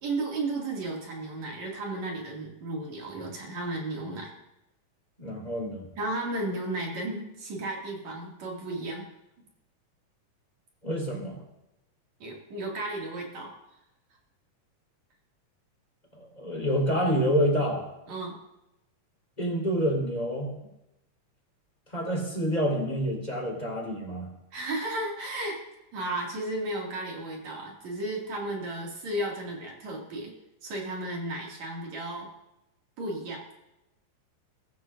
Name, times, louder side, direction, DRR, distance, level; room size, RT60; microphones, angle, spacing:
voice 1, 0.0-4.3 6.0-9.1 12.2-13.6 18.1-18.4 24.5-25.6 25.9-30.3 30.6-32.3 33.0-33.4, right 2 dB, 60° right, -2 dB, 3.6 m, -34 dB
voice 2, 5.2-5.9 10.8-11.4 16.1-17.9 19.4-20.5 21.9-24.3, equal, 10° left, -2 dB, 4.3 m, -28 dB
23.0 x 13.0 x 2.6 m, 0.90 s
omnidirectional pair, 3.7 m